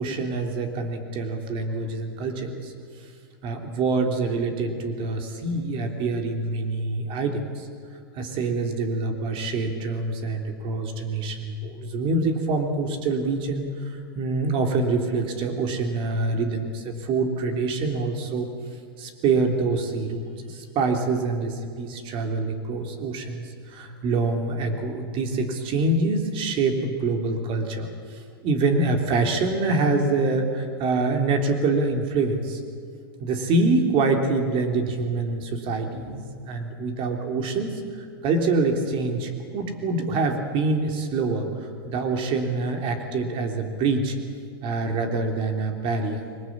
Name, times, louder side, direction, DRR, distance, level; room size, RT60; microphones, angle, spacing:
voice 1, 0.0-2.7 3.4-7.7 8.1-18.5 19.0-32.6 33.2-44.2 44.6-46.2, right 3 dB, 45° right, 4 dB, 3.4 m, -25 dB
22.0 x 19.5 x 8.7 m, 2.2 s
hypercardioid pair, 115°, 13 cm